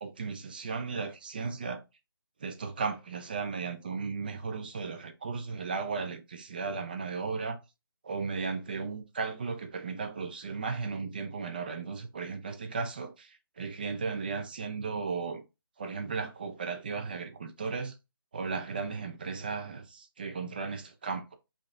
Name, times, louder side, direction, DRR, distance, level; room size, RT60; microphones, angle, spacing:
voice 1, 0.0-1.8 2.4-7.6 8.0-15.4 15.8-17.9 18.3-21.3, right 4 dB, 25° right, 0.4 m, -35 dB
5.0 x 2.7 x 2.4 m
figure-of-eight pair, 160°, 13 cm